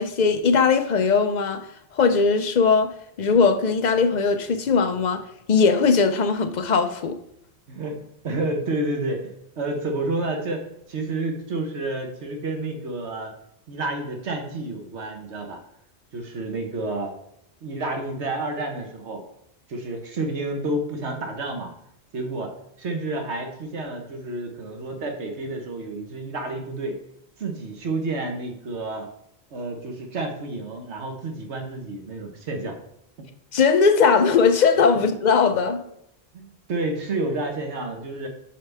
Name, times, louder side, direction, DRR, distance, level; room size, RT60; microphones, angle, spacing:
voice 1, 0.0-1.7 1.9-7.2 33.5-35.8, left 5 dB, 50° left, 0.6 m, -19 dB
voice 2, 7.7-13.3 13.7-15.6 16.1-17.1 17.6-19.2 19.7-21.7 22.1-27.0 27.4-29.1 29.5-32.7 34.9-35.0 36.3-38.3, right 2 dB, 85° right, 1.4 m, -30 dB
7.5 x 5.7 x 3.4 m
omnidirectional pair, 1.1 m